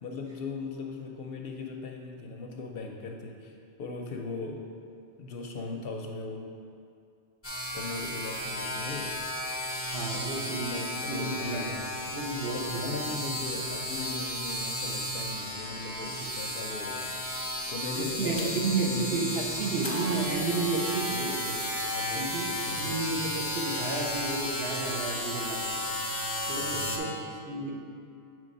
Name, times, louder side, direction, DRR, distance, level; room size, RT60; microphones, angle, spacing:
voice 1, 0.0-4.7 5.2-6.6 7.7-9.3 10.1-17.1 17.7-18.5 18.8-19.4 21.8-23.1 26.5-27.3, left 3 dB, 65° left, 2 dB, 0.7 m, -39 dB
sound 1, 7.4-27.0, left 1 dB, 15° left, 0.7 m, -33 dB
voice 2, 9.9-10.7 11.1-11.6 12.1-13.0 18.0-21.7 22.1-22.5 22.8-25.9 26.5-27.1 27.4-27.7, right 3 dB, 65° right, -1 dB, 1.0 m, -32 dB
7.5 x 3.2 x 5.2 m, 2.4 s
omnidirectional pair, 1.2 m